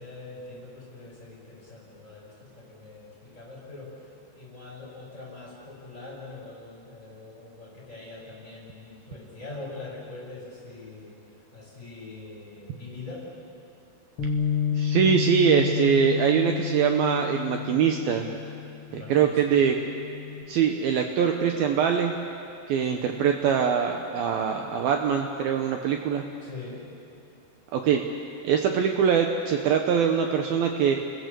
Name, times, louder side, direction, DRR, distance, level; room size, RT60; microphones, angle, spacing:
voice 1, 0.0-11.2 11.5-13.3 18.9-19.6 22.8-23.3 26.4-26.8, left 3 dB, 15° left, -3 dB, 6.2 m, -43 dB
Bass guitar, 14.2-20.4, left 8 dB, 50° left, 1.6 m, -30 dB
voice 2, 14.7-18.3 18.9-19.8 20.5-22.1 22.7-26.2 27.7-28.0 28.4-31.0, right 7 dB, 85° right, 4 dB, 2.1 m, -23 dB
29.5 x 22.0 x 6.9 m, 2.6 s
omnidirectional pair, 5.8 m